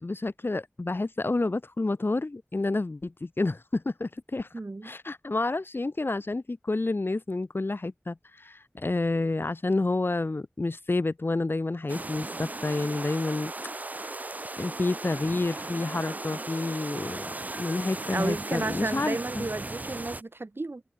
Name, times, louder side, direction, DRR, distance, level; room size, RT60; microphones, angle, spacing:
voice 1, 0.0-13.5 13.9-14.3 14.6-19.5, left 2 dB, 60° left, 1.1 m, -29 dB
voice 2, 4.5-4.9 18.1-20.8, right 2 dB, 65° right, 1.5 m, -32 dB
sound 1, 11.9-20.2, right 2 dB, 40° right, 0.4 m, -37 dB
wide cardioid pair, 45°, 4 cm